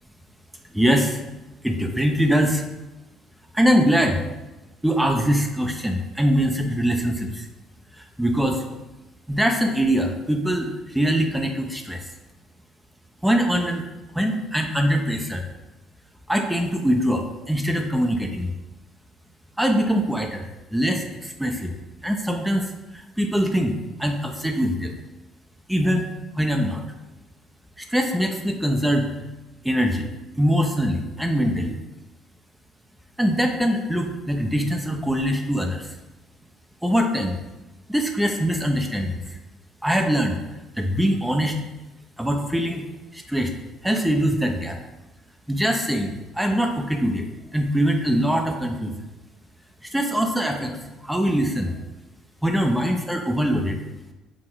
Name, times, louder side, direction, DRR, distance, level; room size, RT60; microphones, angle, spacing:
voice 1, 0.7-1.2 1.6-2.6 3.5-4.2 4.8-7.5 8.0-8.6 9.3-12.1 13.2-13.8 14.1-15.4 16.3-18.5 19.6-21.7 22.0-24.9 25.7-26.1 26.3-26.8 27.8-29.1 29.6-30.1 30.4-31.8 33.2-35.9 36.8-37.4 37.9-39.4 39.8-40.4 40.8-41.6 42.2-42.9 43.1-43.5 43.8-44.8 45.5-47.3 47.5-48.9 49.8-50.8 51.0-51.8 52.4-53.8, equal, 5° right, 3 dB, 0.9 m, -23 dB
6.3 x 4.3 x 3.9 m, 1.1 s
hypercardioid pair, 55°, 0 cm